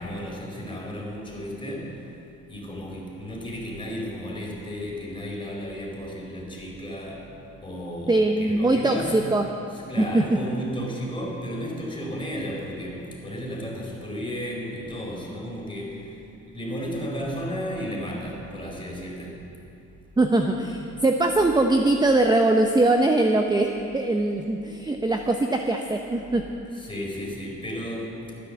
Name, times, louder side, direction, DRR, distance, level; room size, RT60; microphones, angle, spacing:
voice 1, 0.0-2.0 2.5-7.3 7.6-9.3 9.7-16.1 16.4-19.4 26.7-28.2, equal, 15° left, -2 dB, 4.1 m, -34 dB
voice 2, 8.1-9.5 10.0-10.4 20.2-26.4, right 2 dB, 15° right, 4 dB, 0.8 m, -22 dB
14.0 x 10.0 x 7.4 m, 2.7 s
cardioid pair, 90°, 30 cm